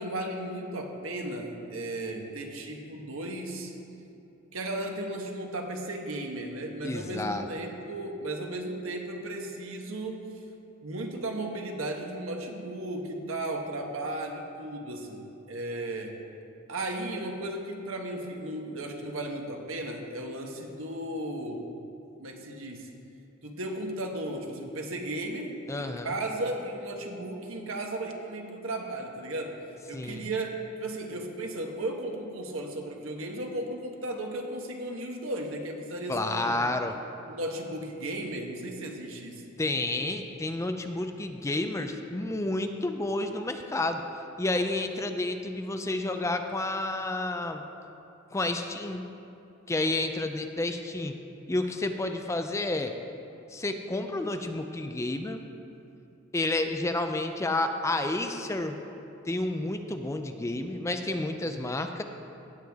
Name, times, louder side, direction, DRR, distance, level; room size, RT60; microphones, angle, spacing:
voice 1, 0.0-3.7 4.5-10.3 10.8-16.2 16.7-21.7 22.2-22.9 23.4-29.6 29.9-30.5 30.8-36.6 37.3-39.5 61.4-61.8, right 1 dB, 80° right, 2 dB, 1.2 m, -35 dB
voice 2, 6.8-7.5 25.7-26.1 29.9-30.3 36.1-37.0 39.6-44.0 44.4-47.6 48.3-49.0 49.7-51.2 51.5-52.9 53.5-55.4 56.3-58.8 59.3-62.0, left 2 dB, 15° left, 6 dB, 0.4 m, -30 dB
17.0 x 8.0 x 3.5 m, 2.8 s
head